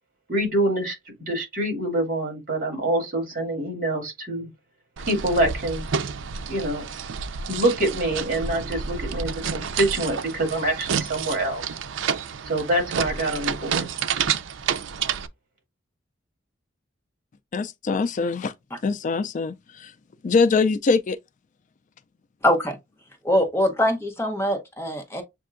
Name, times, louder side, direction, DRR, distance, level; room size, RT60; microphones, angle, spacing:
voice 1, 0.3-1.0 1.3-4.5 5.1-5.9 6.5-6.9 7.5-11.6 12.4-13.9, right 1 dB, 45° right, 2.4 m, -25 dB
sound 1, 5.0-15.3, right 6 dB, 75° right, 0.4 m, -29 dB
voice 2, 17.5-18.5 18.8-19.9 20.2-21.2, left 4 dB, 40° left, 0.3 m, -23 dB
voice 3, 22.4-22.8 23.2-25.2, equal, 15° left, 0.9 m, -23 dB
7.3 x 2.6 x 2.5 m
head